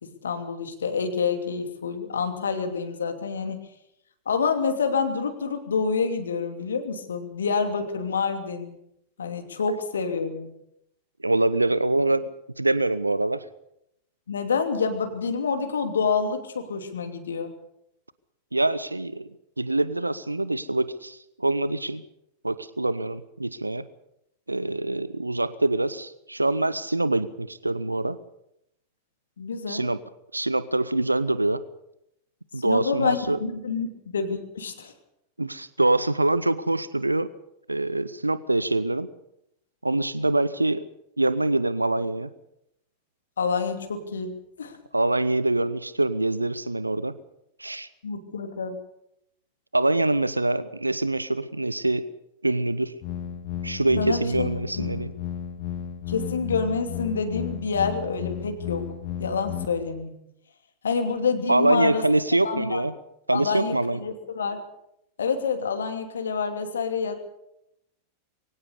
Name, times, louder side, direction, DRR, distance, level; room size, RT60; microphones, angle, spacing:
voice 1, 0.0-3.6 4.3-8.8 9.2-10.5 14.3-17.5 29.4-29.9 32.6-34.9 43.4-44.3 44.6-44.8 48.0-48.8 54.0-54.5 54.8-54.9 56.1-58.8 59.2-60.1 60.8-62.0 62.4-62.8 63.3-64.6 65.2-67.1, left 5 dB, 70° left, 7 dB, 2.8 m, -27 dB
voice 2, 11.2-12.2 12.6-13.4 18.5-19.3 19.6-22.0 22.4-23.9 24.5-28.2 29.7-30.0 30.3-31.6 32.5-33.4 35.4-37.3 37.7-39.1 39.8-40.9 41.2-42.3 44.9-47.2 47.6-47.9 49.7-52.1 52.4-52.9 53.6-55.1 61.5-62.9 63.3-64.0, right 2 dB, 85° right, 17 dB, 0.8 m, -24 dB
sound 1, 53.0-59.7, left 9 dB, 45° left, 2.2 m, -34 dB
23.0 x 17.5 x 6.8 m, 0.80 s
figure-of-eight pair, 90°, 0 cm